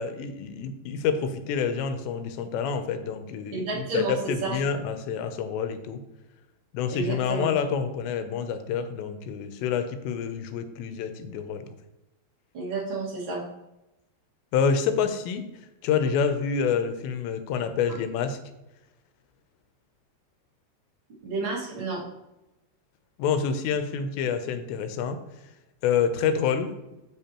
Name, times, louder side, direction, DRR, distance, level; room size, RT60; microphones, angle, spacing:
voice 1, 0.0-6.0 6.7-11.7 14.5-15.5 15.8-18.4 23.2-25.2 25.8-26.7, left 6 dB, 90° left, 9 dB, 2.9 m, -27 dB
voice 2, 3.5-4.6 6.9-7.5 12.5-13.4 21.2-22.0, right 3 dB, 45° right, -5 dB, 1.7 m, -30 dB
7.7 x 6.7 x 2.9 m, 0.95 s
omnidirectional pair, 4.9 m